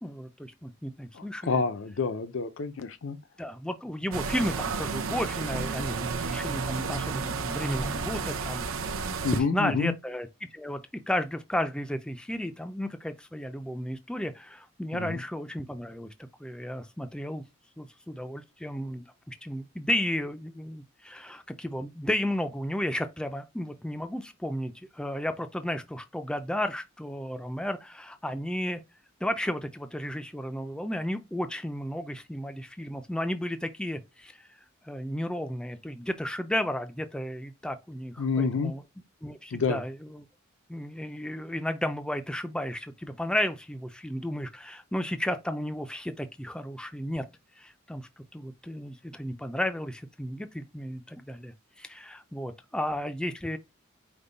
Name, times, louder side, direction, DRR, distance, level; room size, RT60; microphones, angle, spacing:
voice 1, 0.0-1.6 3.4-8.6 9.5-10.8 11.1-16.1 16.4-17.4 17.8-28.8 29.2-34.5 34.8-38.8 39.2-40.2 40.7-47.2 47.6-51.5 51.8-53.6, left 1 dB, 5° left, 0.3 m, -33 dB
voice 2, 1.1-3.2 9.2-9.9 14.9-15.2 38.2-38.7 39.5-39.8, left 5 dB, 65° left, 0.5 m, -28 dB
sound 1, 4.1-9.4, right 4 dB, 80° right, 0.7 m, -32 dB
5.2 x 2.1 x 3.9 m
head